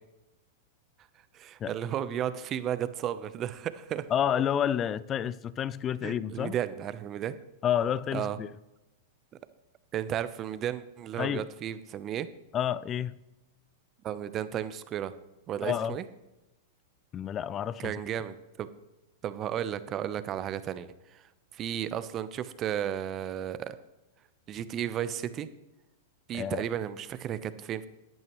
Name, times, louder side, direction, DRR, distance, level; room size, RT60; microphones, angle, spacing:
voice 1, 1.3-4.1 6.0-7.3 8.1-8.4 9.9-12.3 14.0-15.1 15.5-16.0 17.8-18.7 19.2-23.8 24.5-25.5 26.3-27.9, right 10 dB, 35° right, 0.8 m, -34 dB
voice 2, 4.1-6.5 7.6-8.5 11.2-11.4 12.5-13.2 15.6-16.0 17.1-17.9 26.3-26.6, left 9 dB, 30° left, 0.5 m, -29 dB
14.5 x 10.5 x 3.1 m
hypercardioid pair, 110°, 0 cm